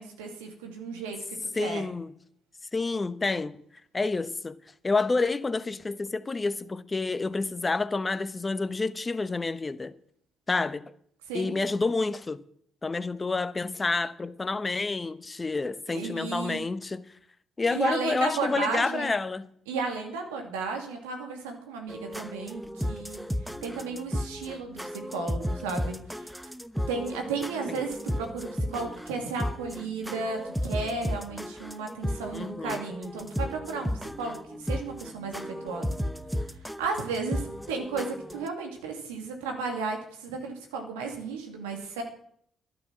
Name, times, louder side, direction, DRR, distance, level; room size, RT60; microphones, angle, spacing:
voice 1, 0.0-1.9 11.3-11.5 15.9-16.6 17.7-19.1 19.7-23.2 23.6-26.0 26.9-33.9 34.2-35.9 36.8-42.0, right 4 dB, 85° right, 2.5 m, -34 dB
voice 2, 1.5-2.1 2.7-3.6 3.9-4.6 4.8-9.9 10.5-10.9 11.3-12.4 12.8-17.1 17.6-19.5 27.7-27.8 32.3-32.8, left 3 dB, 30° left, 1.0 m, -29 dB
sound 1, 21.9-38.5, equal, ahead, 1.0 m, -34 dB
12.0 x 11.0 x 6.2 m
hypercardioid pair, 50°, 0 cm